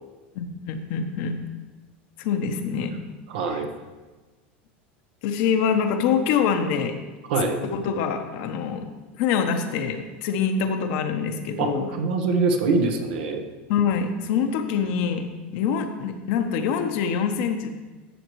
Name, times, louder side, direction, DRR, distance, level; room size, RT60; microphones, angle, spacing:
voice 1, 0.3-1.3 2.2-2.9 5.2-6.9 7.6-8.8 9.2-11.9 13.7-15.3 15.5-17.7, left 6 dB, 65° left, 6 dB, 0.9 m, -25 dB
voice 2, 3.3-3.7 7.3-7.6 11.6-13.4, right 3 dB, 75° right, 5 dB, 1.1 m, -24 dB
13.5 x 6.4 x 3.1 m, 1.3 s
supercardioid pair, 115°, 6 cm